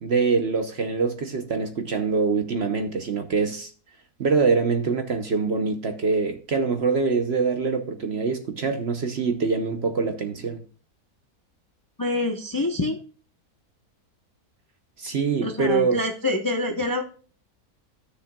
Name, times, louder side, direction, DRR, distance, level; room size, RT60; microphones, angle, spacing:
voice 1, 0.0-3.7 4.2-10.6 15.0-16.0, right 4 dB, 50° right, 0.9 m, -24 dB
voice 2, 12.0-13.0 15.4-17.0, left 2 dB, 20° left, 0.6 m, -26 dB
14.5 x 6.5 x 2.3 m
omnidirectional pair, 1.6 m